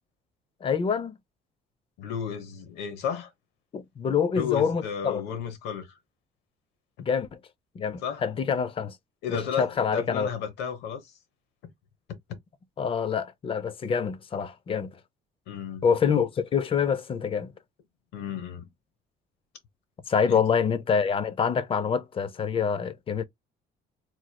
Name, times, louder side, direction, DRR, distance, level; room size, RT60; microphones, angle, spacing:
voice 1, 0.6-1.2 3.7-5.2 7.0-7.3 7.8-9.0 9.3-10.3 12.8-15.0 15.8-17.5 20.1-23.2, left 6 dB, 30° left, 0.5 m, -26 dB
voice 2, 2.0-3.3 4.4-5.9 8.0-8.2 9.2-11.0 15.5-15.8 18.1-18.7 20.3-20.4, left 8 dB, 90° left, 1.0 m, -32 dB
3.0 x 3.0 x 2.2 m
cardioid pair, 110°, 17 cm